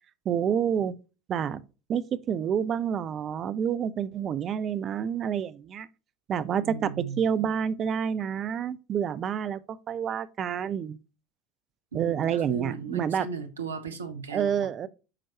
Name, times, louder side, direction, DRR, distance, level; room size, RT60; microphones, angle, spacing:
voice 1, 0.3-0.9 1.3-1.6 1.9-5.9 6.3-11.0 11.9-13.3 14.3-14.9, right 8 dB, 35° right, 0.4 m, -28 dB
voice 2, 6.6-7.2 11.9-14.7, right 5 dB, 75° right, 0.8 m, -36 dB
8.8 x 4.5 x 2.8 m
figure-of-eight pair, 70°, 0 cm